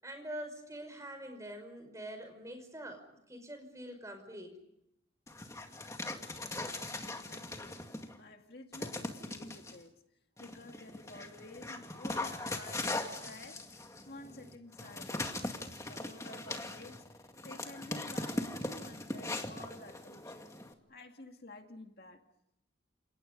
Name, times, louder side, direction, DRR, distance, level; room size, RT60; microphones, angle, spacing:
voice 1, 0.0-3.0 3.3-4.5, right 1 dB, 15° right, 6 dB, 5.6 m, -45 dB
Dog, 5.3-8.2 8.7-9.8 10.4-20.7, left 2 dB, 15° left, 2.1 m, -40 dB
voice 2, 6.8-9.9 10.4-15.5 15.8-17.1 17.4-20.5 20.9-22.2, left 2 dB, 55° left, 4 dB, 2.2 m, -51 dB
30.0 x 28.5 x 5.4 m, 0.80 s
head